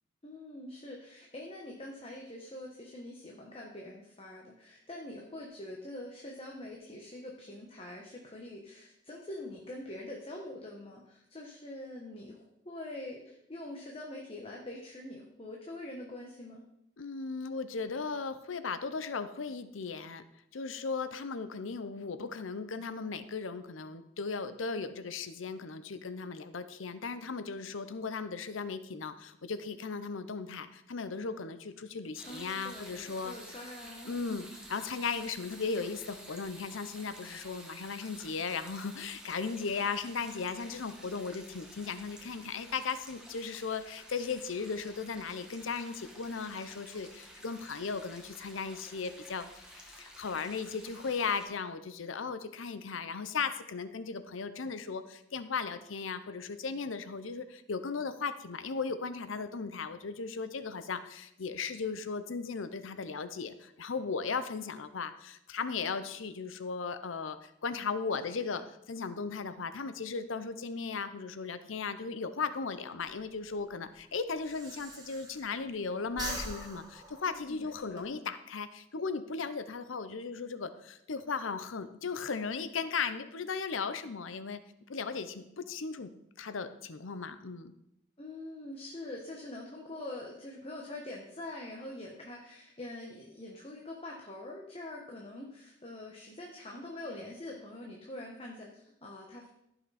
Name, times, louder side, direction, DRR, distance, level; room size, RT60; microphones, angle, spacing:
voice 1, 0.2-16.6 32.2-34.5 68.5-68.6 77.3-78.2 88.2-99.5, left 1 dB, 30° left, -1 dB, 1.2 m, -44 dB
voice 2, 17.0-20.2 20.5-33.3 34.0-68.6 68.9-84.6 84.9-86.1 86.4-87.7, left 5 dB, 90° left, 12 dB, 0.7 m, -37 dB
sound 1, 32.2-51.5, right 1 dB, 5° right, 1.6 m, -51 dB
Breathing, 73.0-75.8 76.1-78.0, right 2 dB, 20° right, 1.4 m, -43 dB
15.0 x 5.9 x 4.2 m, 0.81 s
head